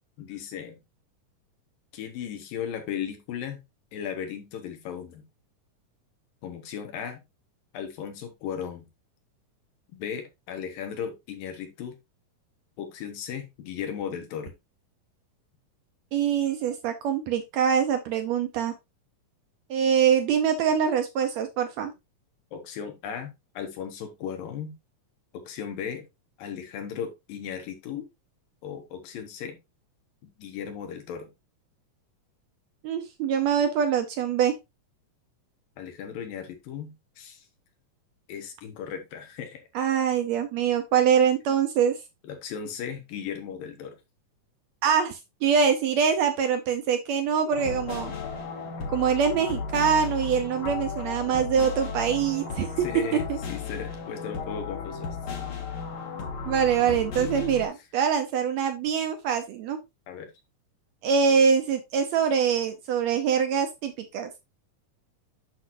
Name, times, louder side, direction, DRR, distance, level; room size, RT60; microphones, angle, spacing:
voice 1, 0.2-0.8 1.9-3.6 3.9-5.2 6.4-7.2 7.7-8.9 10.0-12.0 12.8-14.5 22.5-24.7 25.3-26.0 26.4-28.1 28.6-29.6 30.4-31.3 35.8-37.5 38.3-39.8 42.2-44.0 52.8-55.2 60.1-60.3, left 8 dB, 90° left, 6 dB, 3.1 m, -36 dB
voice 2, 16.1-18.7 19.7-21.9 32.8-34.5 39.7-42.0 44.8-48.1 48.9-52.9 53.1-53.4 56.5-59.8 61.0-64.4, right 7 dB, 80° right, 7 dB, 1.6 m, -24 dB
sound 1, 47.5-57.7, left 4 dB, 75° left, 3.3 m, -34 dB
8.0 x 6.2 x 2.6 m, 0.22 s
omnidirectional pair, 3.9 m